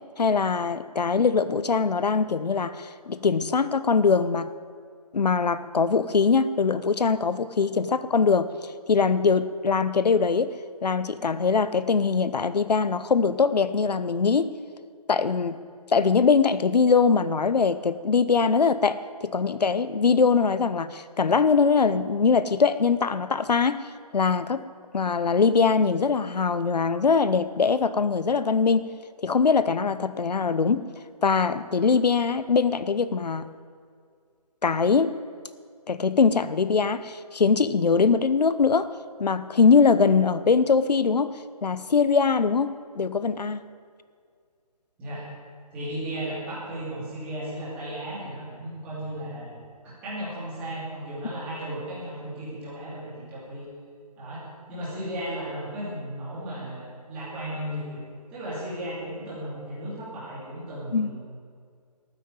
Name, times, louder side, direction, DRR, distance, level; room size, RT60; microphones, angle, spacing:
voice 1, 0.2-4.5 5.1-8.5 8.9-10.5 10.8-14.5 15.1-15.6 15.9-23.8 24.1-24.7 24.9-28.9 29.2-30.9 31.2-33.5 34.6-35.1 35.9-38.9 39.2-41.3 41.6-43.6 60.9-61.1, left 5 dB, 85° left, 14 dB, 1.0 m, -22 dB
voice 2, 45.7-53.6 54.2-58.0 58.3-61.2, right 1 dB, 5° right, -9 dB, 2.7 m, -35 dB
13.5 x 9.3 x 9.0 m, 2.1 s
hypercardioid pair, 180°, 20 cm